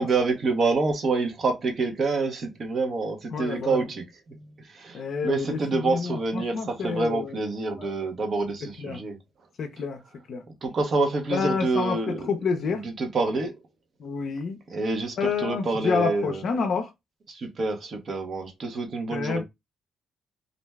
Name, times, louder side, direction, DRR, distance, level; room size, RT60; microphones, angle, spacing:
voice 1, 0.0-4.0 4.7-9.2 10.6-12.3 12.6-13.5 14.7-16.4 17.3-19.4, right 3 dB, 50° right, 0.8 m, -27 dB
voice 2, 3.3-3.8 4.9-7.4 7.8-7.9 8.8-9.0 9.6-10.0 10.3-10.4 11.3-12.0 12.3-12.8 14.0-14.6 15.2-16.9 19.1-19.4, left 5 dB, 60° left, 0.5 m, -28 dB
2.5 x 2.1 x 3.3 m
cardioid pair, 90°, 0 cm